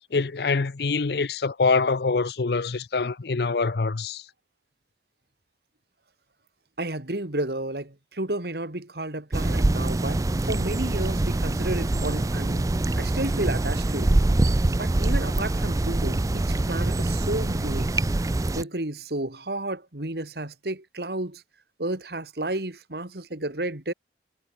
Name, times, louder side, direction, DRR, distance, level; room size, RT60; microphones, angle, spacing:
voice 1, 0.1-4.2, left 4 dB, 65° left, 0.6 m, -25 dB
voice 2, 6.8-12.7 13.0-14.1 14.8-17.9 18.5-21.4 21.8-23.9, right 1 dB, 65° right, 2.3 m, -32 dB
sound 1, 9.3-18.6, right 2 dB, 20° right, 0.4 m, -24 dB
head